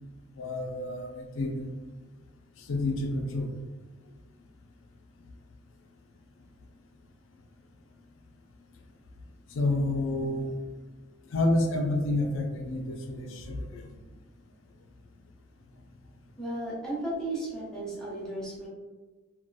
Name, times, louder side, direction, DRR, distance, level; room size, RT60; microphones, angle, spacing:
voice 1, 0.3-1.7 2.6-3.6 9.5-10.6 11.3-14.0, left 2 dB, 80° left, 3 dB, 0.4 m, -29 dB
voice 2, 16.4-18.7, right 1 dB, 5° left, -8 dB, 0.7 m, -34 dB
2.7 x 2.2 x 2.2 m, 1.2 s
head